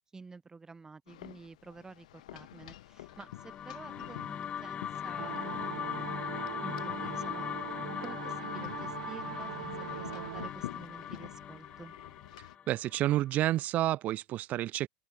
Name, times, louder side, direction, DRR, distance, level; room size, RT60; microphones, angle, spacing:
voice 1, 0.1-6.1 6.6-7.5 8.0-11.9, right 4 dB, 15° right, 5.2 m, -50 dB
sound 1, 1.1-12.5, left 15 dB, 70° left, 4.6 m, -49 dB
sound 2, 3.1-13.4, left 8 dB, 30° left, 3.6 m, -40 dB
sound 3, 5.2-10.5, right 12 dB, 75° right, 6.4 m, -42 dB
voice 2, 12.7-14.9, right 14 dB, 40° right, 0.9 m, -29 dB
hypercardioid pair, 100°, 4 cm